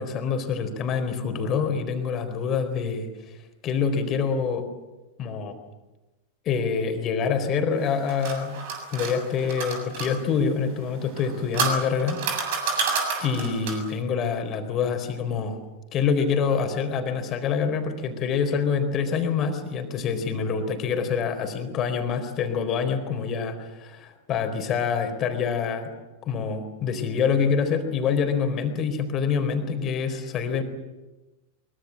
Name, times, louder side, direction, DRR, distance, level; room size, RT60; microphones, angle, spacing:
voice 1, 0.0-3.1 3.6-4.7 5.2-5.6 6.4-8.6 8.9-12.2 12.7-12.9 13.2-15.6 15.9-25.9 26.2-30.6, left 6 dB, 30° left, 7 dB, 4.1 m, -26 dB
sound 1, 7.8-10.1 11.1-13.9, right 4 dB, 50° right, 7.1 m, -29 dB
24.0 x 23.5 x 7.6 m, 1.1 s
figure-of-eight pair, 90°, 0 cm